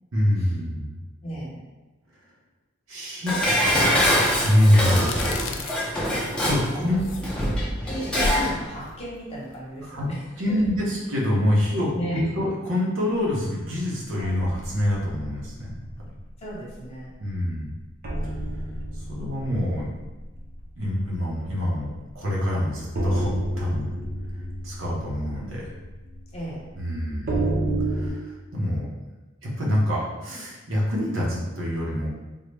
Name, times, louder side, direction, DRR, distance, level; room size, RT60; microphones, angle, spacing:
voice 1, 0.1-1.0 2.9-5.5 6.4-7.0 9.9-10.1 10.4-15.7 17.2-17.7 19.1-19.9 20.8-21.9 22.1-23.9 24.6-25.7 26.8-27.4 27.9-28.9 29.4-32.1, left 1 dB, 80° right, -4 dB, 0.9 m, -25 dB
voice 2, 1.2-1.6 6.7-10.6 11.9-12.3 16.4-17.2 26.3-26.6, right 1 dB, 30° left, -5 dB, 0.9 m, -35 dB
Dishes pots and pans, 3.3-8.5 8.9-9.0, equal, 5° left, 0.6 m, -24 dB
sound 1, 3.4-10.2, left 3 dB, 65° left, 0.3 m, -36 dB
sound 2, 14.2-16.1 16.5-16.7 17.1-17.2 18.0-21.9 22.2-22.3 22.9-28.1, right 1 dB, 50° right, 0.6 m, -30 dB
3.7 x 2.1 x 3.3 m, 1.1 s
head